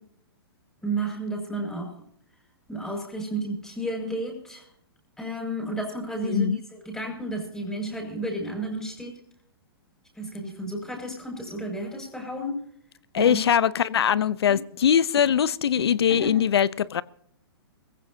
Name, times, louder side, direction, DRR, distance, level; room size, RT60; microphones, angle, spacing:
voice 1, 0.8-1.9 2.7-4.6 5.2-6.5 6.9-9.2 10.2-12.6 13.2-13.4 15.8-15.9 16.2-16.4, right 1 dB, 5° left, 5.8 m, -32 dB
voice 2, 6.2-6.6 13.1-17.0, left 8 dB, 80° left, 0.6 m, -22 dB
22.5 x 15.5 x 2.8 m
hypercardioid pair, 135°, 13 cm